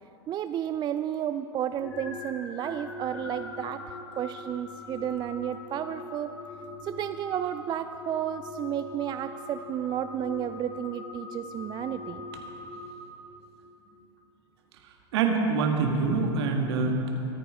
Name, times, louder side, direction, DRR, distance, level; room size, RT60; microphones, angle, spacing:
voice 1, 0.3-6.3 6.8-12.2, right 10 dB, 30° right, 10 dB, 0.4 m, -32 dB
sound 1, 1.8-13.8, left 2 dB, 75° left, 2.4 m, -42 dB
voice 2, 14.8-17.2, right 4 dB, 70° right, 3 dB, 1.8 m, -26 dB
24.0 x 9.2 x 3.7 m, 2.9 s
hypercardioid pair, 90°, 14 cm